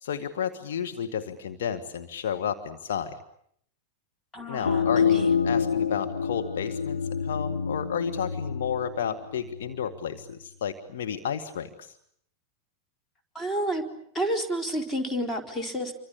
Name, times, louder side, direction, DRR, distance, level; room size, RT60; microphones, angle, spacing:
voice 1, 0.0-3.1 4.5-11.9, left 8 dB, 60° left, 6 dB, 1.6 m, -32 dB
voice 2, 4.3-5.3 13.3-13.8 14.1-15.9, right 1 dB, 15° left, 4 dB, 4.2 m, -30 dB
sound 1, 4.7-10.1, left 6 dB, 75° left, 1.2 m, -27 dB
27.5 x 24.5 x 8.5 m, 0.70 s
figure-of-eight pair, 90°, 0 cm